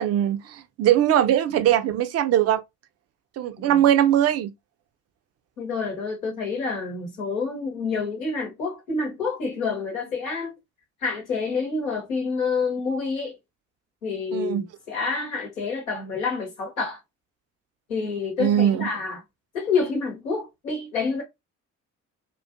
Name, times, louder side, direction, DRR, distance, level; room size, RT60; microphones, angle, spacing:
voice 1, 0.0-2.6 3.4-4.5 14.3-14.6 18.4-18.9, right 11 dB, 40° right, 0.4 m, -21 dB
voice 2, 5.6-10.5 11.0-13.4 14.0-17.0 17.9-19.2 19.5-21.2, left 4 dB, 85° left, 0.9 m, -28 dB
2.4 x 2.2 x 2.4 m
figure-of-eight pair, 45°, 40 cm